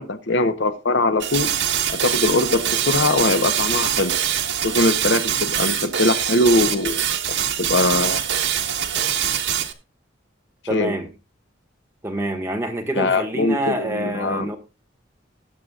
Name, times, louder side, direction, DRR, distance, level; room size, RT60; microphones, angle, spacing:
voice 1, 0.0-1.5 1.9-4.1 4.6-7.1 7.6-8.2 10.7-10.9 13.0-14.6, left 2 dB, 70° left, 1.0 m, -21 dB
sound 1, 1.2-9.7, right 9 dB, 75° right, 1.5 m, -23 dB
voice 2, 10.7-11.1 12.0-14.6, right 1 dB, 15° right, 1.7 m, -26 dB
20.5 x 7.5 x 2.4 m
head